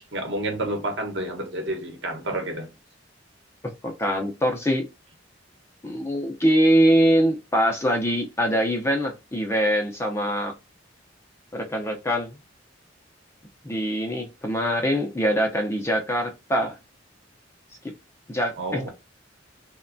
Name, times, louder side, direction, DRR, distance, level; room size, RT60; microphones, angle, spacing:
voice 1, 0.0-2.7 18.6-18.9, right 1 dB, 65° right, 0.9 m, -29 dB
voice 2, 3.8-4.8 5.8-10.5 11.5-12.3 13.6-16.7 18.3-18.9, equal, 15° left, 0.4 m, -23 dB
3.1 x 2.1 x 2.5 m
head